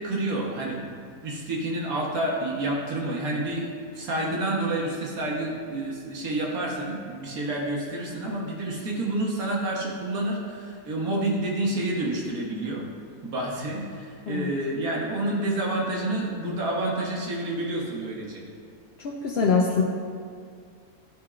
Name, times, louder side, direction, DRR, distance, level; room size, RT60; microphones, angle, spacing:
voice 1, 0.0-12.8 13.2-18.4, right 1 dB, 70° right, -3 dB, 1.6 m, -29 dB
voice 2, 19.0-19.8, left 5 dB, 60° left, -3 dB, 0.7 m, -23 dB
12.0 x 4.4 x 2.4 m, 2.2 s
omnidirectional pair, 1.6 m